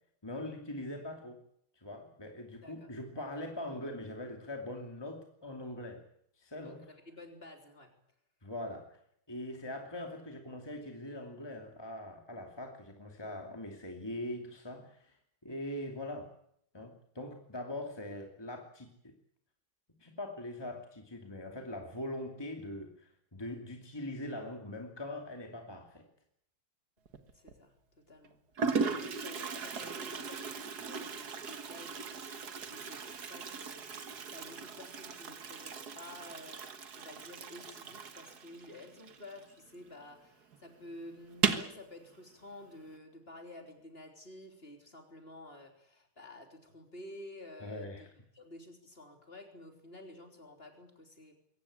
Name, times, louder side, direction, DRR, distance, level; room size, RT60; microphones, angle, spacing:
voice 1, 0.2-1.4 1.8-6.0 6.4-6.9 8.4-9.0 9.3-15.2 15.4-16.3 16.7-19.1 20.0-26.0 47.6-48.1, left 1 dB, 15° left, 3 dB, 2.6 m, -42 dB
voice 2, 6.6-7.9 27.3-28.4 29.0-32.0 32.7-48.1 48.3-51.4, left 1 dB, 30° left, 4 dB, 3.8 m, -51 dB
Toilet flush, 27.1-27.5 28.2-28.3 28.6-39.9 40.1-40.2 40.5-40.6 41.3-41.8, right 5 dB, 60° right, 2.0 m, -37 dB
22.5 x 18.0 x 8.7 m, 0.72 s
omnidirectional pair, 1.9 m